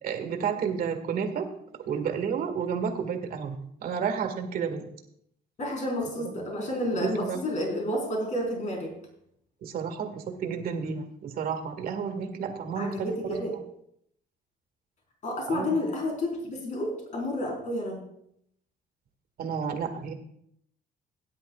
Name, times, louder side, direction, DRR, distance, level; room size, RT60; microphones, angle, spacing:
voice 1, 0.0-1.5 1.8-4.8 6.2-6.3 6.9-7.4 9.6-13.4 15.5-15.8 19.4-20.1, right 6 dB, 60° right, 5 dB, 1.9 m, -31 dB
voice 2, 5.6-8.9 12.8-13.5 15.2-18.0, left 1 dB, 45° left, -1 dB, 4.5 m, -30 dB
17.5 x 10.5 x 2.4 m, 0.71 s
cardioid pair, 110°, 17 cm